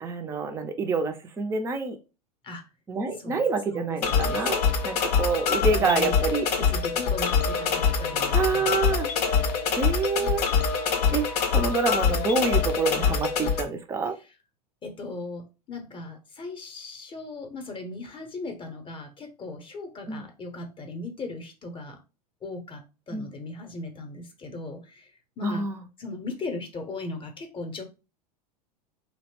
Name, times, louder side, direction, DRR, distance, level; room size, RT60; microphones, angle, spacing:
voice 1, 0.0-2.0 2.9-6.5 8.3-9.1 9.8-10.4 11.1-14.1 20.1-20.2 23.1-23.3 25.4-25.8, right 4 dB, 15° right, 5 dB, 0.4 m, -27 dB
voice 2, 3.7-4.4 5.7-6.2 6.5-8.7 14.2-14.3 14.8-22.0 22.4-25.6 26.0-27.8, left 2 dB, 25° left, 5 dB, 0.7 m, -38 dB
sound 1, 4.0-13.6, left 6 dB, 75° left, 0.6 m, -24 dB
2.6 x 2.0 x 2.9 m, 0.30 s
hypercardioid pair, 90°, 21 cm